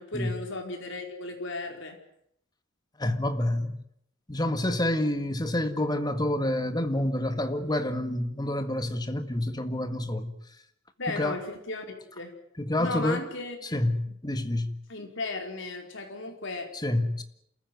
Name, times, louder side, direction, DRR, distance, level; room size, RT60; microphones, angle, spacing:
voice 1, 0.0-2.0 11.0-12.3 12.8-13.8 14.1-14.2 14.9-16.7, left 2 dB, 60° left, 4.7 m, -35 dB
voice 2, 3.0-3.8 4.3-10.3 11.1-11.4 12.6-13.3 13.6-14.7 16.8-17.2, left 1 dB, 20° left, 1.8 m, -28 dB
28.0 x 15.0 x 9.4 m
head